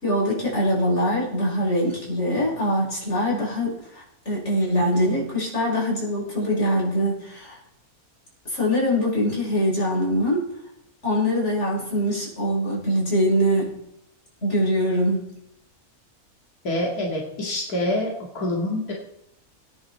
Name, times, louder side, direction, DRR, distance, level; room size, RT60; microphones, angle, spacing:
voice 1, 0.0-7.6 8.5-10.5 11.0-13.8 14.4-15.3, equal, 50° left, -5 dB, 6.8 m, -23 dB
voice 2, 16.6-18.9, left 1 dB, 90° left, -2 dB, 2.8 m, -26 dB
21.0 x 10.0 x 4.4 m, 0.78 s
omnidirectional pair, 1.6 m